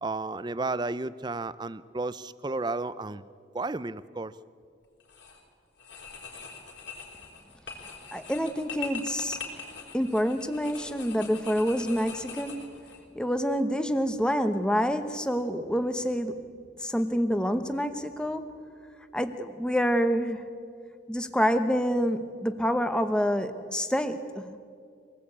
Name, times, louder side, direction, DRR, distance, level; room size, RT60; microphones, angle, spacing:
voice 1, 0.0-3.3 3.5-4.3, right 3 dB, 20° right, 16 dB, 0.5 m, -32 dB
sound 1, 5.0-5.4 5.8-13.0, left 5 dB, 65° left, 4.3 m, -42 dB
voice 2, 8.1-9.4 9.9-12.6 13.1-16.5 16.8-18.5 19.1-20.5 21.1-24.6, equal, 5° left, 9 dB, 0.9 m, -27 dB
25.0 x 18.5 x 8.6 m, 2.3 s
head